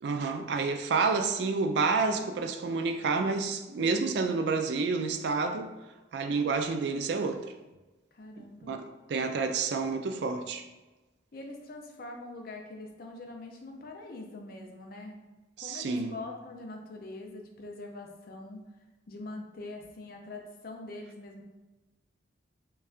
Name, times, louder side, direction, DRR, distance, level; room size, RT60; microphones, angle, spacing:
voice 1, 0.0-5.7 6.1-7.5 8.4-8.8 9.1-10.6 15.6-16.1, right 4 dB, 65° right, 0.3 m, -29 dB
voice 2, 8.1-8.7 11.3-15.2 15.6-18.6 19.1-21.4, left 2 dB, 50° left, 0.5 m, -43 dB
5.3 x 2.3 x 2.4 m
head